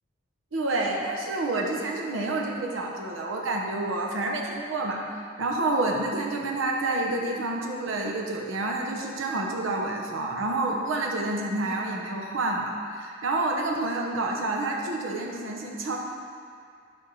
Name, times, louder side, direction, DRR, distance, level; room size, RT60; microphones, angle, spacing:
voice 1, 0.5-16.0, right 2 dB, 80° right, 0 dB, 0.9 m, -28 dB
9.8 x 3.6 x 6.1 m, 2.4 s
head